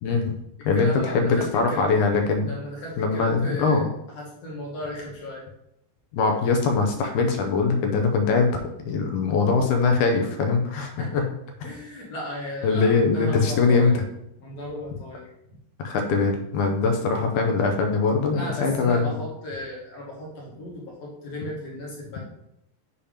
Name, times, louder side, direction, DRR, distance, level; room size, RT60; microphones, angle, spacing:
voice 1, 0.0-0.4 0.7-2.5 3.0-3.8 6.1-11.2 12.6-14.0 15.8-19.2, left 4 dB, 75° left, 4 dB, 1.9 m, -22 dB
voice 2, 0.7-1.9 2.4-3.9 4.1-5.4 11.0-11.2 11.6-13.9 14.4-15.3 18.3-22.2, left 1 dB, 60° left, -4 dB, 2.1 m, -35 dB
7.0 x 2.9 x 5.0 m, 0.80 s
omnidirectional pair, 3.9 m